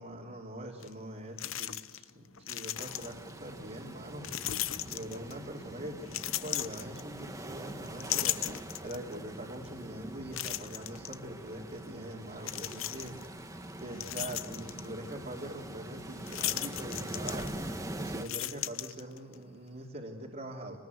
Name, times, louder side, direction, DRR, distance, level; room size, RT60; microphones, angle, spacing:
voice 1, 0.0-4.3 4.9-8.4 8.8-13.1 13.8-17.5 18.0-20.8, right 1 dB, 40° right, -3 dB, 3.2 m, -43 dB
sound 1, 0.8-0.9 1.4-2.1 2.4-3.3 4.2-5.5 6.1-7.5 7.9-9.1 9.6-9.7 10.3-11.2 12.4-13.3 13.7-14.9 16.3-17.8 18.1-19.4, left 13 dB, 70° left, 0.8 m, -36 dB
sound 2, 2.7-18.3, right 1 dB, 15° right, 1.6 m, -43 dB
26.5 x 20.0 x 8.0 m, 1.4 s
head